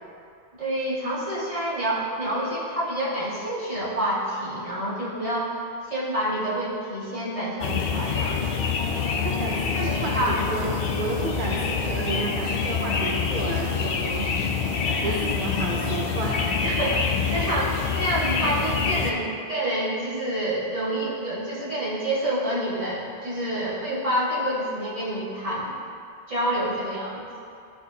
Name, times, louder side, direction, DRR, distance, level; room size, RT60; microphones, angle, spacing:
voice 1, 0.6-8.5 9.7-10.3 14.8-15.2 16.6-25.7 26.3-27.2, right 1 dB, 35° right, -9 dB, 1.7 m, -28 dB
sound 1, 7.6-19.1, left 5 dB, 65° left, 0.8 m, -26 dB
voice 2, 9.2-14.3 14.7-16.4 16.9-17.0 17.3-17.4, right 3 dB, 60° right, -2 dB, 0.8 m, -32 dB
11.5 x 4.3 x 2.8 m, 2.5 s
omnidirectional pair, 1.0 m